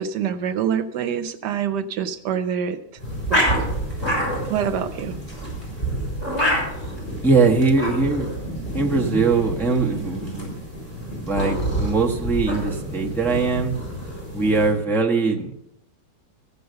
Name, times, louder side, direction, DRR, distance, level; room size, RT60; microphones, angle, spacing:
voice 1, 0.0-2.8 3.3-3.7 4.5-5.2, right 8 dB, 80° right, 10 dB, 1.4 m, -26 dB
sound 1, 3.0-14.7, equal, 20° left, 6.6 m, -27 dB
voice 2, 7.2-8.3 8.7-10.5 11.3-13.7 14.3-15.5, right 4 dB, ahead, -1 dB, 1.0 m, -21 dB
14.5 x 6.8 x 6.7 m, 0.78 s
omnidirectional pair, 1.8 m